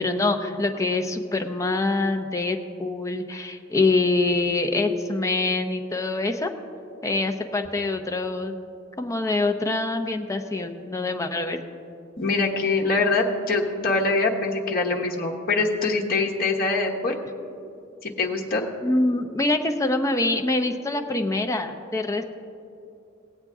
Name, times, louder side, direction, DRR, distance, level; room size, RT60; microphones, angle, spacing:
voice 1, 0.0-6.5 7.0-8.6 9.0-11.6 18.8-22.2, left 2 dB, 15° left, 5 dB, 0.6 m, -25 dB
voice 2, 12.2-17.2 18.0-18.7, left 3 dB, 45° left, -1 dB, 1.2 m, -24 dB
19.0 x 8.0 x 3.6 m, 2.7 s
head